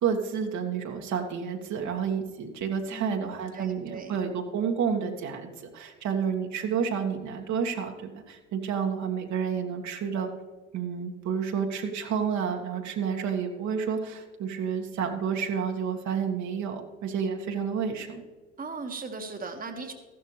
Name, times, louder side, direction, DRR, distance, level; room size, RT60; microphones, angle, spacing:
voice 1, 0.0-10.3 10.7-18.2, right 7 dB, 50° right, 2 dB, 1.8 m, -30 dB
voice 2, 3.5-4.1 18.6-19.9, right 4 dB, 25° right, 4 dB, 1.7 m, -38 dB
14.5 x 12.5 x 3.2 m, 1.3 s
hypercardioid pair, 65°, 36 cm